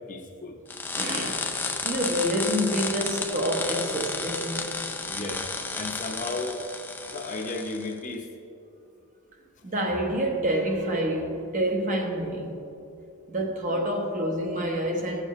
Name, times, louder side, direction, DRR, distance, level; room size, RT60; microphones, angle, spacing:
voice 1, 0.1-0.5 5.1-5.4 5.7-6.6 7.1-8.3, left 2 dB, 35° left, 0.8 m, -34 dB
sound 1, 0.7-7.9, left 3 dB, 10° left, 0.4 m, -32 dB
voice 2, 1.0-1.5 1.8-4.7 9.6-12.6 13.3-15.2, equal, 35° right, 1.0 m, -27 dB
16.0 x 6.7 x 3.1 m
head